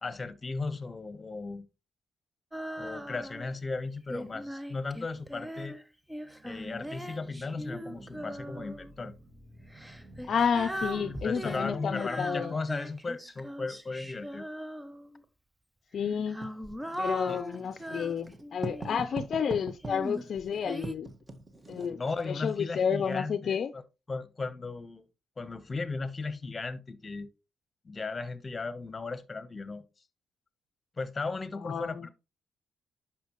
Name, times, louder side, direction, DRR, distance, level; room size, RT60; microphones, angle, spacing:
voice 1, 0.0-1.7 2.8-5.8 6.4-9.1 11.0-14.4 17.3-17.4 22.0-23.8 24.1-25.0 25.4-27.3 27.8-29.8 31.0-32.1, left 3 dB, 30° left, 1.1 m, -36 dB
Female singing, 2.5-3.6 4.1-8.9 9.7-15.2 16.0-19.2 19.8-21.0, equal, 5° right, 0.7 m, -40 dB
sound 1, 6.1-12.4, right 2 dB, 45° right, 2.1 m, -52 dB
voice 2, 10.3-12.6 15.9-16.5 17.0-21.1 21.7-23.7 31.6-32.1, left 7 dB, 55° left, 0.6 m, -31 dB
Writing, 16.4-22.4, right 3 dB, 25° right, 1.6 m, -43 dB
10.5 x 6.1 x 3.1 m
cardioid pair, 90°, 0 cm